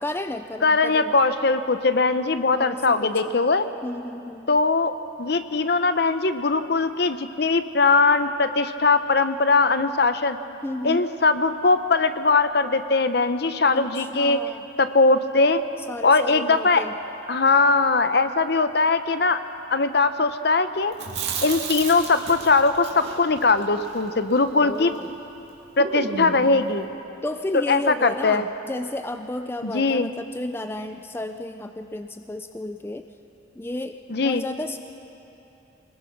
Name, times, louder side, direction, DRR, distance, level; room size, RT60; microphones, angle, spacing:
voice 1, 0.0-1.2 2.5-3.4 3.8-4.6 10.6-11.1 13.7-14.7 15.9-17.0 24.6-25.1 27.2-33.1 33.6-34.8, left 1 dB, 10° left, 8 dB, 0.4 m, -33 dB
voice 2, 0.6-3.7 4.5-4.9 5.2-10.4 10.8-14.4 14.8-15.6 16.0-16.9 17.3-19.4 19.7-20.9 21.4-24.9 25.8-26.8 27.5-28.4 29.6-30.1 34.1-34.4, left 3 dB, 55° left, 11 dB, 0.8 m, -20 dB
Chewing mastication, 20.9-25.1 25.4-25.5 25.8-26.5, right 4 dB, 60° right, 2.8 m, -33 dB
25.0 x 21.0 x 6.0 m, 3.0 s
head